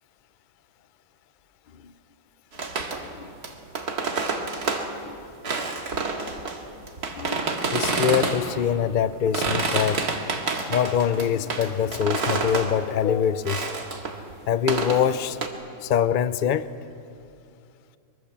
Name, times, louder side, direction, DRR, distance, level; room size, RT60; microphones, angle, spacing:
sound 1, 2.5-4.9 5.4-8.6 9.1-12.7 13.4-14.3 14.7-15.5, right 4 dB, 60° right, 2.4 m, -28 dB
voice 1, 7.1-10.0 10.7-13.7 14.5-15.4 15.8-16.7, left 8 dB, 80° left, 14 dB, 0.4 m, -24 dB
23.5 x 23.5 x 7.3 m, 2.5 s
omnidirectional pair, 1.8 m